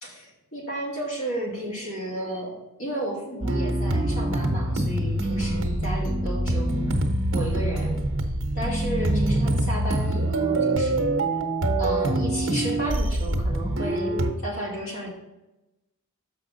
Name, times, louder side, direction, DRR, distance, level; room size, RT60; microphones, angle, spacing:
voice 1, 0.0-7.0 7.3-8.0 8.5-11.4 11.8-15.1, right 1 dB, 65° left, -3 dB, 2.4 m, -33 dB
sound 1, 3.4-14.3, right 1 dB, 60° right, 1.0 m, -25 dB
7.1 x 5.7 x 4.0 m, 0.98 s
head